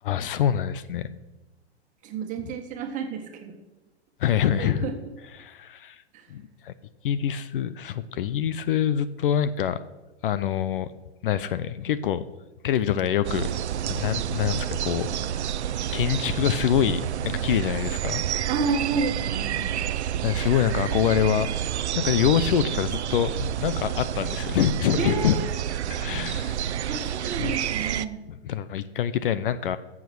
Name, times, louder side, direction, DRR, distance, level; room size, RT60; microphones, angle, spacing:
voice 1, 0.0-1.1 4.2-4.9 5.4-6.0 6.3-6.7 7.0-9.8 10.2-10.9 11.2-12.2 12.6-13.5 13.8-15.4 15.9-18.5 19.8-19.9 20.2-21.5 22.0-25.4 25.9-26.6 27.4-27.5 28.3-29.8, left 9 dB, 55° left, 15 dB, 0.7 m, -25 dB
voice 2, 2.0-3.5 4.6-5.0 6.1-6.3 18.4-19.7 25.0-25.4 26.9-28.2, right 5 dB, 25° right, 5 dB, 1.6 m, -30 dB
sound 1, 13.2-28.1, right 10 dB, 80° right, 0.7 m, -29 dB
14.0 x 7.3 x 6.3 m, 1.1 s
hypercardioid pair, 140°, 33 cm